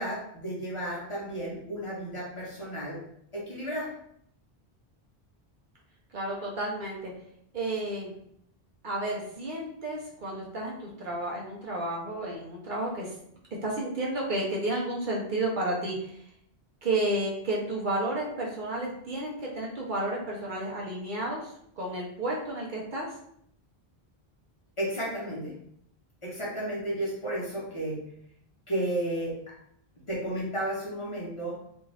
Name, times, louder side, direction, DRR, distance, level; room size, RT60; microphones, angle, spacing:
voice 1, 0.0-3.0 3.3-3.9 24.8-25.5 26.2-28.0 28.7-29.5 30.1-31.6, right 1 dB, 35° left, -6 dB, 0.7 m, -33 dB
voice 2, 6.1-7.1 7.5-8.2 8.8-13.1 13.6-16.2 16.8-21.5 21.8-23.1, right 1 dB, 55° right, -3 dB, 0.8 m, -31 dB
2.6 x 2.3 x 3.2 m, 0.70 s
omnidirectional pair, 1.1 m